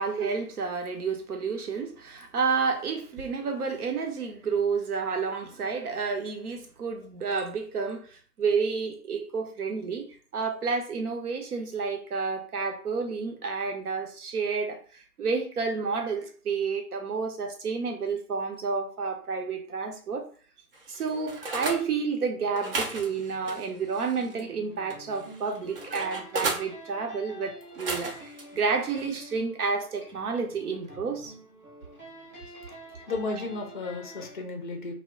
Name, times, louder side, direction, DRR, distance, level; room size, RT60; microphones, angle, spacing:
voice 1, 0.0-20.3 20.9-31.3, right 5 dB, 75° right, 0.8 m, -30 dB
sound 1, 20.7-21.8 22.5-24.5 24.9-26.7 27.6-28.4 28.9-29.2, right 2 dB, 40° right, 0.5 m, -35 dB
sound 2, 24.1-34.4, equal, 15° right, 0.8 m, -48 dB
voice 2, 33.1-34.9, left 3 dB, 35° left, 0.4 m, -33 dB
2.1 x 2.1 x 3.6 m
figure-of-eight pair, 140°, 46 cm